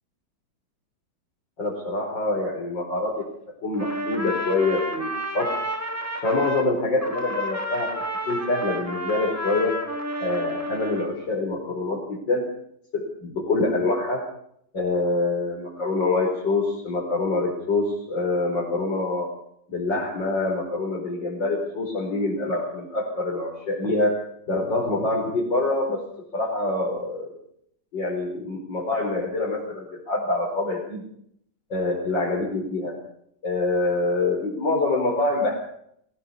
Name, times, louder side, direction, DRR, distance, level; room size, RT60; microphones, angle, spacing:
voice 1, 1.6-3.2 3.6-5.5 6.2-7.9 8.3-9.7 10.2-12.4 12.9-14.2 14.7-19.3 19.7-24.2 24.5-26.0 26.3-27.3 27.9-31.0 31.7-33.0 33.4-35.5, left 2 dB, 85° left, -3 dB, 5.3 m, -25 dB
Trumpet, 3.7-6.7 7.0-11.1, equal, 10° right, 3.1 m, -31 dB
22.5 x 18.0 x 7.0 m, 0.71 s
omnidirectional pair, 1.9 m